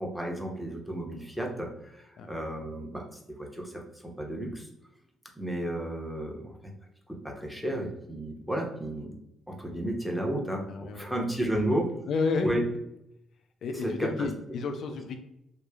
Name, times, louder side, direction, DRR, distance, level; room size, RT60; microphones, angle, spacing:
voice 1, 0.0-4.7 5.3-6.7 7.1-9.1 9.5-11.9 12.4-12.7 13.7-14.3, right 1 dB, ahead, 0 dB, 0.7 m, -33 dB
voice 2, 10.7-11.1 12.1-12.6 13.6-15.2, left 4 dB, 65° left, 6 dB, 0.3 m, -31 dB
3.0 x 2.0 x 2.3 m, 0.81 s
cardioid pair, 90°, 0 cm